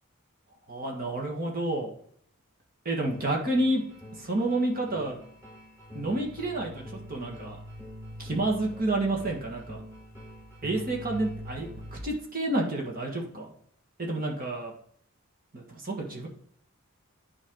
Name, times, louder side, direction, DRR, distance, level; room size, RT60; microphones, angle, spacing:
voice 1, 0.7-1.9 2.9-3.9 4.2-5.2 5.9-7.6 8.2-9.8 10.6-13.5 14.0-14.7 15.5-16.3, right 2 dB, 40° right, 0 dB, 1.8 m, -29 dB
sound 1, 3.1-12.0, equal, 15° right, 3.6 m, -44 dB
9.8 x 4.8 x 3.8 m, 0.65 s
head